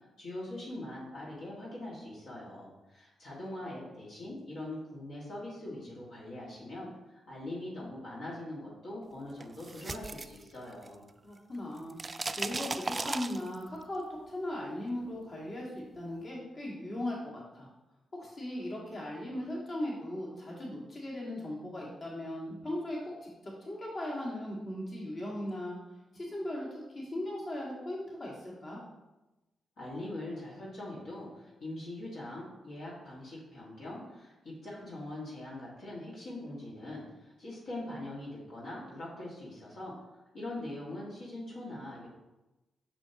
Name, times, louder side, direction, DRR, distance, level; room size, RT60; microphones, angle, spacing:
voice 1, 0.2-6.9 7.3-11.1 29.8-39.9 40.3-42.1, left 1 dB, 70° left, -6 dB, 1.9 m, -42 dB
sound 1, 9.4-11.1 11.4-13.8, right 3 dB, 35° right, 0.3 m, -37 dB
voice 2, 11.2-12.0 12.4-17.7 18.1-25.8 26.1-28.8, left 1 dB, 50° left, -4 dB, 2.0 m, -38 dB
6.1 x 5.4 x 2.9 m, 1.0 s
supercardioid pair, 45°, 0 cm